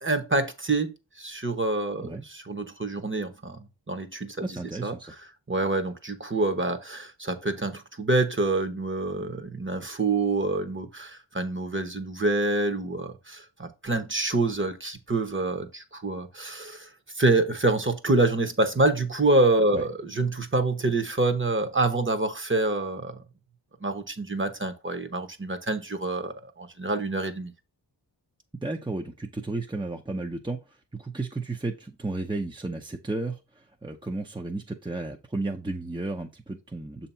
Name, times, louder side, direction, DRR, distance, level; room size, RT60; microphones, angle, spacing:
voice 1, 0.0-4.5 4.8-4.9 5.5-16.9 17.1-23.2 23.8-27.5, right 2 dB, 25° right, 1.0 m, -26 dB
voice 2, 4.4-5.1 19.7-19.8 28.6-30.6 30.9-37.1, right 2 dB, 10° right, 0.6 m, -33 dB
6.7 x 2.8 x 5.5 m
wide cardioid pair, 50°, 44 cm